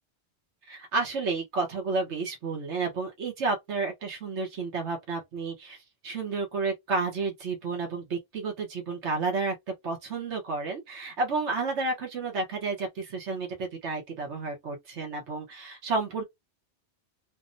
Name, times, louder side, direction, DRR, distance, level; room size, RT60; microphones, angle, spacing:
voice 1, 0.7-9.5 9.8-16.2, right 3 dB, 85° right, 1.2 m, -31 dB
3.4 x 2.0 x 2.5 m
omnidirectional pair, 1.2 m